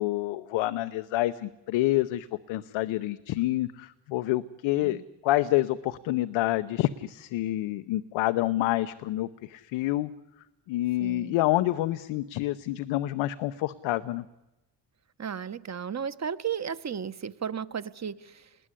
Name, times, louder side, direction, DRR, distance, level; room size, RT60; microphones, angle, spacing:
voice 1, 0.0-10.1 10.7-14.2, left 16 dB, 90° left, 12 dB, 0.9 m, -28 dB
voice 2, 11.0-11.3 15.2-18.6, right 7 dB, 35° right, 14 dB, 1.2 m, -34 dB
28.5 x 20.5 x 10.0 m, 1.0 s
cardioid pair, 80°, 45 cm